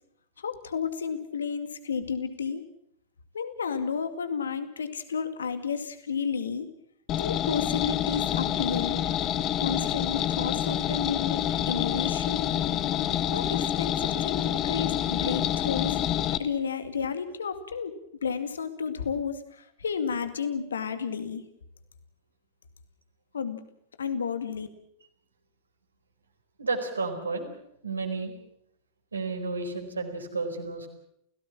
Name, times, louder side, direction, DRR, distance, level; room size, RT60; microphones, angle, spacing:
voice 1, 0.4-2.6 3.3-6.7 7.2-9.2 9.6-12.5 13.3-16.0 16.4-21.4 23.3-23.6 24.0-24.7, left 6 dB, 70° left, 10 dB, 2.2 m, -32 dB
sound 1, 7.1-16.4, left 11 dB, 35° left, 1.4 m, -27 dB
voice 2, 26.6-27.5 27.8-28.3 29.1-30.9, right 3 dB, 75° right, 4 dB, 4.5 m, -31 dB
28.5 x 17.0 x 7.4 m, 0.76 s
figure-of-eight pair, 90°, 0 cm